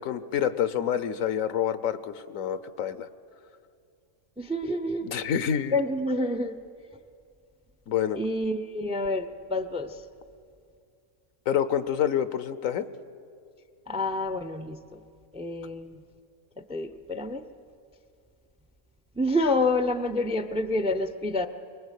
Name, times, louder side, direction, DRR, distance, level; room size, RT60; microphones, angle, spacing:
voice 1, 0.0-3.1 5.0-5.7 7.9-8.2 11.5-12.9, left 9 dB, 75° left, 13 dB, 1.2 m, -27 dB
voice 2, 4.4-5.1 5.7-6.5 8.2-10.0 13.9-14.8 15.3-16.0 16.7-17.5 19.2-21.5, left 1 dB, 5° right, 10 dB, 0.4 m, -28 dB
24.0 x 20.5 x 8.3 m, 2.4 s
omnidirectional pair, 1.4 m